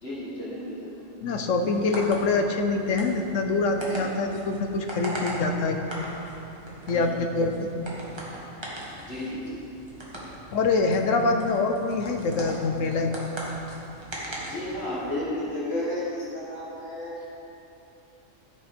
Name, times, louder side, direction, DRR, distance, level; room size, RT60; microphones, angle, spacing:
voice 1, 0.0-1.0 6.9-7.1 9.0-9.6 14.4-17.2, left 1 dB, 50° left, -7 dB, 2.0 m, -33 dB
voice 2, 1.2-5.8 6.9-7.7 10.5-13.1, left 3 dB, 75° left, 5 dB, 1.2 m, -25 dB
sound 1, 1.6-15.2, right 1 dB, 20° right, 1.8 m, -40 dB
12.5 x 7.0 x 5.3 m, 2.8 s
omnidirectional pair, 1.3 m